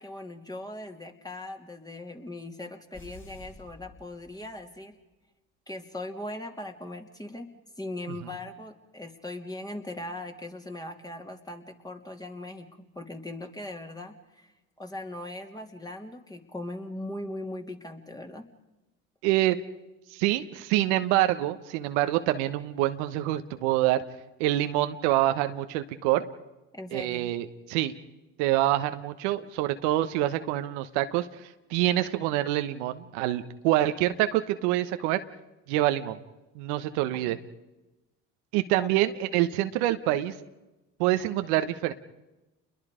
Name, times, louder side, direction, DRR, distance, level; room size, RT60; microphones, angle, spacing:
voice 1, 0.0-5.0 5.7-7.5 7.8-14.5 14.8-18.5 26.7-27.4 37.1-37.4 38.8-38.9, left 1 dB, 10° left, 4 dB, 2.9 m, -39 dB
sound 1, 2.9-4.8, left 2 dB, 35° left, 7.2 m, -50 dB
voice 2, 19.2-19.6 20.1-24.0 24.4-26.3 26.9-27.9 28.4-35.2 35.7-36.2 36.5-37.4 38.5-40.3 41.0-41.9, right 14 dB, 85° right, 9 dB, 1.2 m, -26 dB
29.0 x 22.0 x 5.1 m, 1.0 s
supercardioid pair, 70°, 33 cm